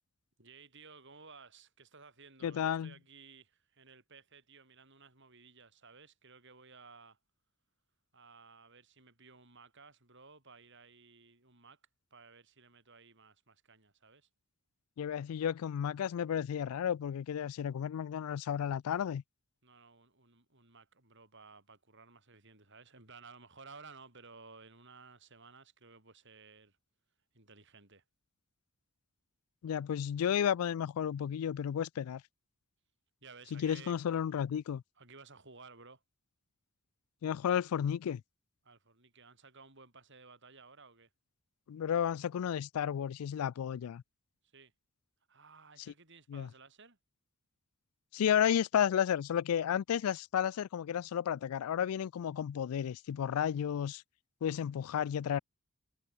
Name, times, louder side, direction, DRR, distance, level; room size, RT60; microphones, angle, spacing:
voice 1, 0.4-7.2 8.1-11.8 12.1-14.3 19.6-26.8 27.3-28.0 33.2-34.0 35.0-36.0 38.6-41.1 44.5-44.7 45.3-47.0, right 4 dB, 55° right, 7.6 m, -56 dB
voice 2, 2.4-2.9 15.0-19.2 29.6-32.2 33.5-34.8 37.2-38.2 41.7-44.0 46.3-46.5 48.1-54.0 54.4-55.4, left 9 dB, 75° left, 0.3 m, -32 dB
head